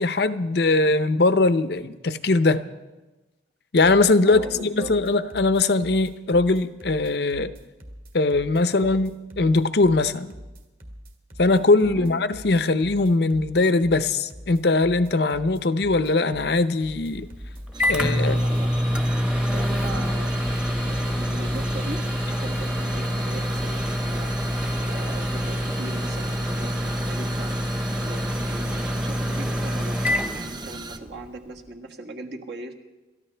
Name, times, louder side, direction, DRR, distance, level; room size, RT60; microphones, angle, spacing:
voice 1, 0.0-2.6 3.7-7.5 8.1-9.1 9.4-10.3 11.4-17.3 17.9-18.4, left 3 dB, 60° left, 0.7 m, -21 dB
sound 1, 3.8-23.6, equal, 45° right, 2.0 m, -43 dB
voice 2, 4.2-4.9 8.8-9.0 11.8-12.2 18.0-18.7 19.5-24.3 24.9-27.5 28.0-32.7, right 2 dB, 60° right, 1.6 m, -39 dB
Microwave oven, 17.1-31.1, equal, 5° right, 0.9 m, -26 dB
sound 2, 17.7-31.0, right 3 dB, 20° right, 0.5 m, -39 dB
28.0 x 13.5 x 3.4 m
head